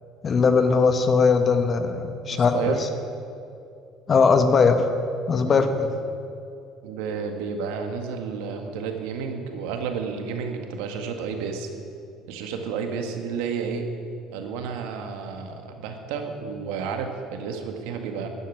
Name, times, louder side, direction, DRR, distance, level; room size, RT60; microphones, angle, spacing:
voice 1, 0.2-2.7 4.1-4.9 5.3-5.9, left 5 dB, 40° left, 7 dB, 1.4 m, -20 dB
voice 2, 2.3-2.8 5.4-5.7 6.8-11.7 12.3-13.8 14.3-18.3, right 6 dB, 85° right, 4 dB, 1.9 m, -31 dB
13.5 x 9.3 x 9.4 m, 2.5 s
supercardioid pair, 85°, 0 cm